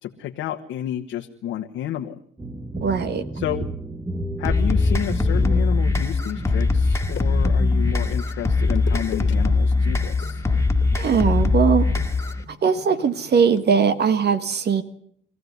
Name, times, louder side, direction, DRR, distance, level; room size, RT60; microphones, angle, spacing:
voice 1, 0.0-2.1 3.3-3.7 4.4-10.5, left 12 dB, 90° left, 2 dB, 1.5 m, -30 dB
sound 1, 2.4-8.0, right 1 dB, 10° right, 1.6 m, -31 dB
voice 2, 2.8-3.2 10.9-11.8 12.6-14.8, right 6 dB, 55° right, 11 dB, 1.6 m, -20 dB
sound 2, 4.5-12.4, left 3 dB, 15° left, 2.2 m, -21 dB
sound 3, 6.3-7.6 8.6-9.3 9.6-9.9 10.2-14.2, left 10 dB, 70° left, 2.0 m, -40 dB
24.5 x 15.5 x 9.6 m, 0.64 s
cardioid pair, 90°, 20 cm